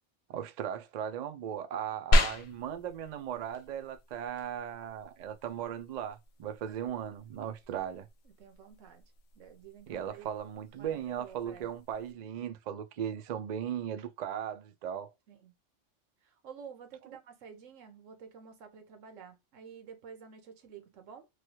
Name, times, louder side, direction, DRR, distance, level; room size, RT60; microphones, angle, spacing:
voice 1, 0.3-8.1 9.9-15.1, right 9 dB, 70° right, 0.4 m, -37 dB
sound 1, 2.1-12.1, equal, 65° left, 0.8 m, -35 dB
voice 2, 6.7-7.0 8.2-9.0 9.3-10.3 10.8-11.7 15.3-15.5 16.2-21.3, right 6 dB, 90° right, 1.2 m, -50 dB
3.1 x 2.3 x 2.9 m
omnidirectional pair, 1.3 m